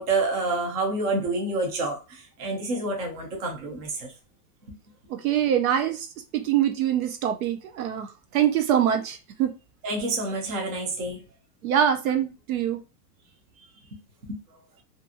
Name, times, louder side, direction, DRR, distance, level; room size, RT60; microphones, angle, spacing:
voice 1, 0.0-4.1 9.8-11.2 13.9-14.0 14.3-14.4, right 2 dB, 25° right, 0 dB, 0.5 m, -28 dB
voice 2, 5.2-6.1 6.3-9.5 11.6-12.8, right 10 dB, 70° right, 7 dB, 0.7 m, -24 dB
2.6 x 2.6 x 2.4 m, 0.29 s
supercardioid pair, 165°, 44 cm